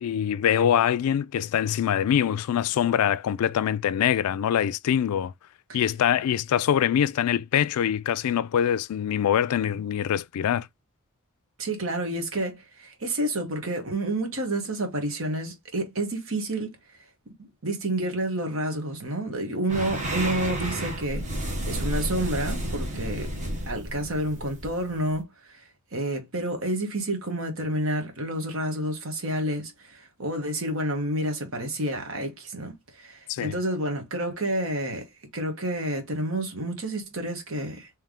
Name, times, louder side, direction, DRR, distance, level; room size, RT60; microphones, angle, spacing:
voice 1, 0.0-5.3 5.7-10.7 33.3-33.5, left 9 dB, 80° left, 0.3 m, -24 dB
voice 2, 11.6-16.7 17.4-37.9, right 1 dB, 65° right, 1.2 m, -29 dB
sound 1, 19.7-25.2, right 1 dB, 35° right, 1.1 m, -31 dB
3.3 x 3.1 x 3.6 m
head